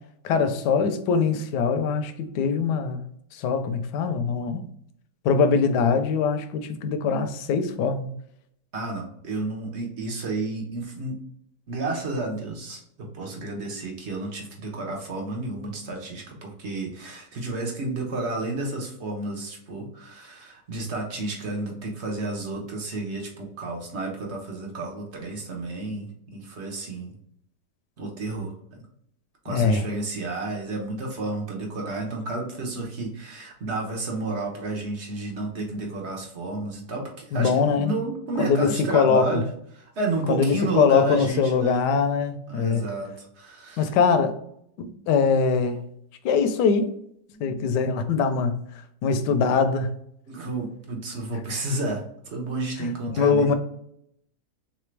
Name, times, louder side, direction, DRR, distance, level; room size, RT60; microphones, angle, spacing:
voice 1, 0.2-3.0 3.3-4.7 5.2-8.1 29.5-29.8 37.3-37.9 38.4-38.7 38.9-39.4 40.3-42.8 43.8-44.4 44.8-45.8 46.2-46.9 47.4-48.6 49.0-49.9 52.8-52.9 53.2-53.5, left 5 dB, 75° left, 9 dB, 1.2 m, -22 dB
voice 2, 8.7-11.2 11.7-27.1 28.0-28.5 29.4-41.9 42.5-44.0 47.3-47.7 50.3-53.5, right 2 dB, 45° right, 1 dB, 1.0 m, -31 dB
3.7 x 3.4 x 3.2 m, 0.71 s
omnidirectional pair, 1.9 m